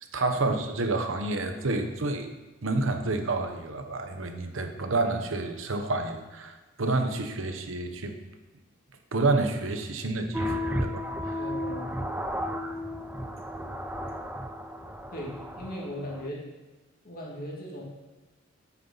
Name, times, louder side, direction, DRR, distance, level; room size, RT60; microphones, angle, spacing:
voice 1, 0.1-2.3 2.6-8.2 9.1-11.4, right 2 dB, 70° right, 6 dB, 1.1 m, -29 dB
sound 1, 10.3-16.3, equal, 10° right, 0.4 m, -33 dB
voice 2, 11.4-12.0 15.1-16.4 17.0-17.8, equal, 45° left, -3 dB, 2.3 m, -38 dB
9.6 x 8.5 x 4.1 m, 1.2 s
head